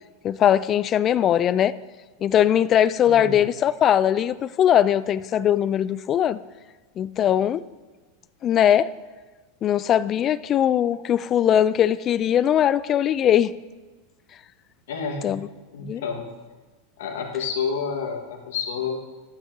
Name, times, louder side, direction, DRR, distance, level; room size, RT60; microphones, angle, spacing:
voice 1, 0.2-1.7 2.2-6.4 7.0-7.6 8.4-8.9 9.6-13.5 15.2-15.5 15.8-16.0, left 10 dB, 35° left, 17 dB, 0.3 m, -20 dB
voice 2, 3.1-3.5 14.9-15.4 15.7-16.3 17.0-19.0, left 6 dB, 75° left, 2 dB, 1.5 m, -29 dB
13.0 x 9.1 x 2.8 m, 1.2 s
hypercardioid pair, 100°, 0 cm